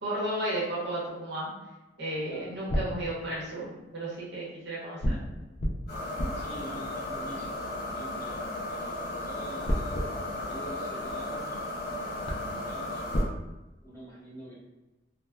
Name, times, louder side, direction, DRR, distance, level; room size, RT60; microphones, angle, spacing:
voice 1, 0.0-1.5 2.0-5.2, right 1 dB, 65° right, -6 dB, 0.9 m, -33 dB
sound 1, 2.3-3.8 5.0-8.3 9.6-11.5 11.9-12.0 12.2-13.3, equal, 35° left, 0.4 m, -34 dB
sound 2, 5.9-13.2, left 2 dB, 55° left, 1.1 m, -35 dB
voice 2, 6.3-11.8 12.5-13.3 13.8-14.6, equal, 15° left, -8 dB, 0.9 m, -46 dB
3.2 x 2.1 x 2.2 m, 1.0 s
head